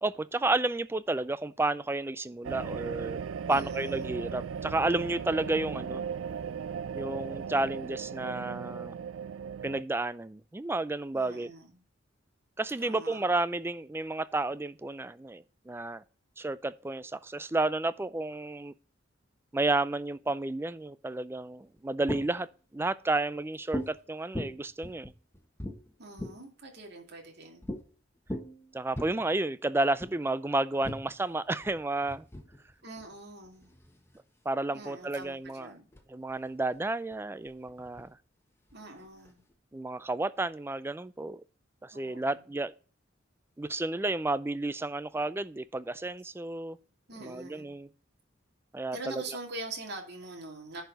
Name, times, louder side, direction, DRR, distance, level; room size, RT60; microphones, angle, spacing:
voice 1, 0.0-3.2 3.5-6.0 6.9-8.9 9.6-11.5 12.6-16.0 16.4-18.7 19.5-22.5 22.7-25.1 28.7-32.3 34.5-35.7 36.1-38.1 39.7-41.4 41.8-42.7 43.6-46.8 47.2-47.9 48.7-49.2, right 2 dB, 10° right, 0.4 m, -31 dB
sound 1, 2.4-9.8, right 7 dB, 90° right, 0.4 m, -37 dB
voice 2, 3.5-4.2 11.1-11.8 12.8-13.3 26.0-27.7 32.8-33.7 34.7-35.9 38.7-39.4 41.9-42.5 47.1-47.8 48.9-50.8, right 2 dB, 60° right, 2.4 m, -44 dB
sound 2, 21.6-22.5 23.7-24.0 24.3-26.5 27.6-27.8 28.1-29.1 30.0-30.2 30.8-34.2 34.9-35.5 35.9-36.0 36.3-38.1 38.7-39.5, equal, 15° left, 1.3 m, -40 dB
10.5 x 4.6 x 5.3 m
head